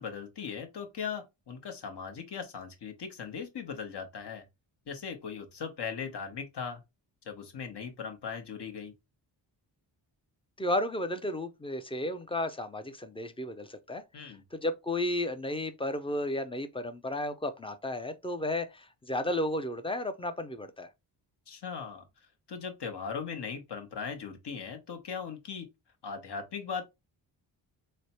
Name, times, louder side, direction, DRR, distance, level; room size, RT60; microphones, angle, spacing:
voice 1, 0.0-4.4 4.9-6.8 7.3-8.9 14.1-14.4 21.5-22.0 22.5-25.7 26.0-26.9, left 6 dB, 60° left, 1.1 m, -39 dB
voice 2, 10.6-20.9, left 1 dB, 10° left, 0.5 m, -33 dB
3.2 x 2.1 x 4.2 m
cardioid pair, 65°, 46 cm